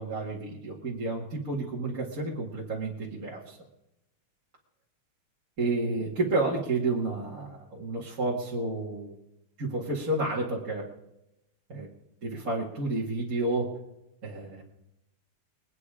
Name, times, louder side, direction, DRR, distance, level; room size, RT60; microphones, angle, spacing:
voice 1, 0.0-3.6 5.6-9.2 9.6-10.8 11.7-11.9 12.2-13.7 14.2-14.6, right 2 dB, 40° right, -5 dB, 2.5 m, -30 dB
22.0 x 9.7 x 5.0 m, 0.86 s
omnidirectional pair, 2.4 m